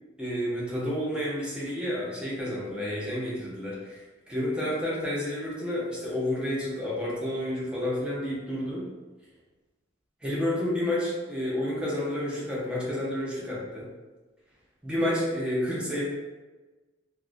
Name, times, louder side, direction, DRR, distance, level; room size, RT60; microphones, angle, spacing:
voice 1, 0.2-8.9 10.2-13.9 14.8-16.0, left 1 dB, 5° right, -7 dB, 0.5 m, -30 dB
2.4 x 2.1 x 2.4 m, 1.2 s
head